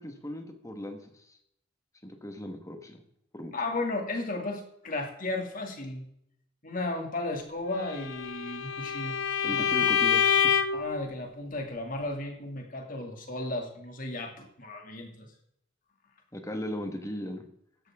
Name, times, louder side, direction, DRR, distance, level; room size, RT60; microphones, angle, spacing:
voice 1, 0.0-1.4 2.0-3.0 3.3-3.5 9.4-10.5 16.3-17.5, left 1 dB, 15° left, 5 dB, 1.5 m, -37 dB
voice 2, 3.5-6.1 6.6-9.2 9.5-9.7 10.7-15.3, left 2 dB, 40° left, 2 dB, 2.4 m, -34 dB
Bowed string instrument, 7.9-10.9, left 7 dB, 80° left, 0.8 m, -26 dB
15.5 x 12.0 x 3.7 m, 0.75 s
head